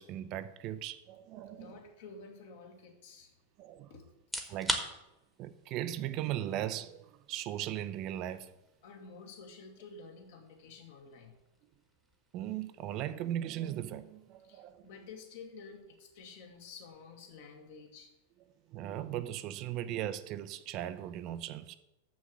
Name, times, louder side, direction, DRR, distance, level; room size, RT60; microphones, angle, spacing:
voice 1, 0.0-1.8 3.6-3.9 4.5-4.9 5.4-8.5 12.3-14.9 18.7-21.7, right 12 dB, 40° right, 0.5 m, -38 dB
voice 2, 1.5-3.3 3.9-4.0 8.8-11.4 14.4-18.1, left 4 dB, 55° left, 1.8 m, -51 dB
sound 1, 4.2-19.0, right 1 dB, ahead, 1.2 m, -46 dB
6.9 x 6.3 x 7.6 m
figure-of-eight pair, 90°, 0 cm